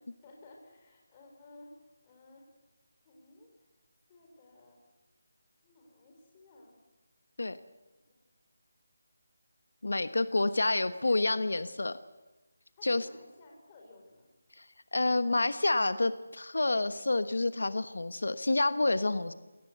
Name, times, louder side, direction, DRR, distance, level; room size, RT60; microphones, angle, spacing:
voice 1, 0.2-2.5 3.0-3.5 4.1-4.8 5.6-6.8 8.0-8.1 10.4-11.4 12.8-14.3, left 2 dB, 15° left, 1 dB, 4.6 m, -55 dB
voice 2, 9.8-12.0 12.8-13.1 14.6-14.7 14.9-19.3, left 2 dB, 85° left, 12 dB, 1.3 m, -28 dB
29.0 x 18.5 x 8.0 m, 1.1 s
figure-of-eight pair, 175°, 0 cm